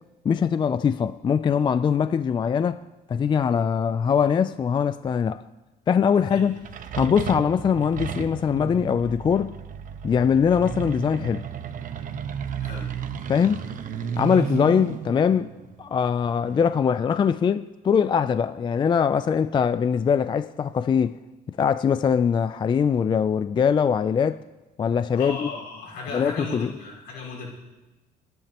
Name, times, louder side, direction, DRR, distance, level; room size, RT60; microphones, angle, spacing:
voice 1, 0.2-2.8 3.1-5.4 5.9-6.6 6.9-9.6 10.0-11.4 13.3-13.6 14.2-15.5 15.8-21.2 21.5-24.4 24.8-25.5 26.1-26.7, left 7 dB, 30° left, 0.4 m, -22 dB
sound 1, 6.4-16.8, right 8 dB, 50° right, 1.0 m, -34 dB
voice 2, 12.6-12.9 14.3-14.5 25.1-27.5, left 3 dB, 75° left, 6.2 m, -36 dB
28.5 x 10.5 x 3.0 m
cardioid pair, 110°, 17 cm